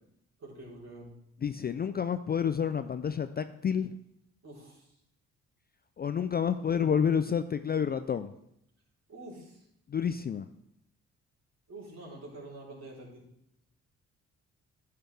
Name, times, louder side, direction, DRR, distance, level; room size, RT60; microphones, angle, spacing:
voice 1, 0.4-1.1 4.4-5.0 9.1-9.7 11.7-13.3, right 2 dB, 50° right, -5 dB, 3.8 m, -47 dB
voice 2, 1.4-4.0 6.0-8.3 9.9-10.5, left 7 dB, 30° left, 10 dB, 0.4 m, -29 dB
10.0 x 6.7 x 3.4 m, 0.76 s
supercardioid pair, 55°, 34 cm